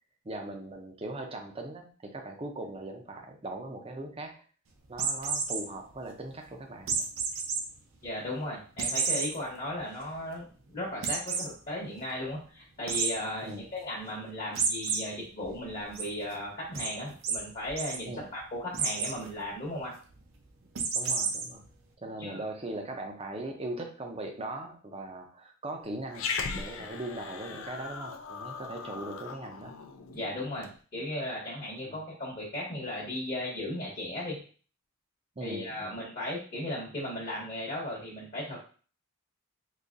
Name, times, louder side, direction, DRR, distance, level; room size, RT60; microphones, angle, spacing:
voice 1, 0.2-4.4 4.9-7.1 13.4-13.7 18.1-18.3 20.6-20.7 20.9-21.6 22.0-29.7 31.9-32.0 35.4-36.0, right 2 dB, 25° right, 4 dB, 0.5 m, -40 dB
sound 1, 4.9-5.6 6.9-7.6 8.0-8.1 8.8-9.3 9.8-9.9 10.1-10.2 11.0-11.5 12.9-13.1 14.5-15.0 15.4-16.0 16.7-16.9 17.2-17.4 17.7-18.0 18.7-19.1 20.7-21.4, right 5 dB, 70° right, 0.6 m, -30 dB
voice 2, 8.0-20.0 22.2-22.4 30.1-34.4 35.4-38.7, left 1 dB, 35° left, -4 dB, 1.0 m, -36 dB
Growling, 26.1-30.7, left 5 dB, 65° left, 0.4 m, -38 dB
3.9 x 2.7 x 2.5 m, 0.39 s
head